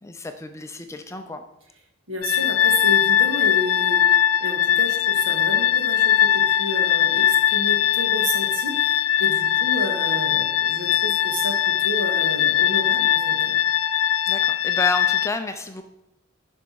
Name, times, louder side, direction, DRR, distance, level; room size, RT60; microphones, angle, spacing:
voice 1, 0.0-1.4 14.3-15.8, left 2 dB, 15° left, 7 dB, 0.5 m, -30 dB
voice 2, 2.1-13.5, equal, 65° right, 2 dB, 1.9 m, -31 dB
sound 1, 2.2-15.3, left 10 dB, 80° left, 0.4 m, -20 dB
11.5 x 5.2 x 4.7 m, 0.88 s
head